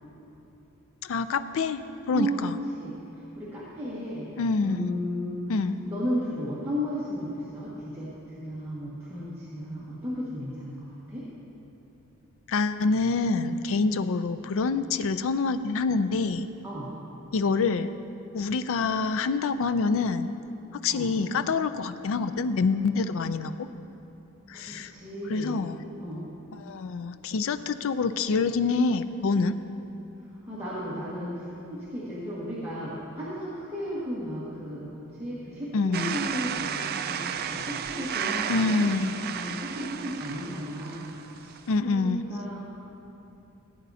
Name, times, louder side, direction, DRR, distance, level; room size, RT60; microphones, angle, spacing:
voice 1, 1.0-2.6 4.4-4.9 5.5-5.8 12.5-16.5 17.3-17.9 18.3-20.3 20.7-23.7 24.5-24.9 25.3-25.8 26.6-29.6 35.7-36.2 38.5-39.1 41.7-42.2, left 4 dB, 65° left, 12 dB, 0.4 m, -26 dB
voice 2, 2.1-4.3 4.6-5.5 5.8-11.2 16.6-16.9 20.9-21.1 24.5-25.6 26.0-26.2 30.5-38.8 39.2-42.6, equal, 10° right, -10 dB, 1.7 m, -34 dB
sound 1, 35.9-41.7, right 8 dB, 45° right, 0.4 m, -33 dB
17.5 x 9.3 x 2.8 m, 2.9 s
head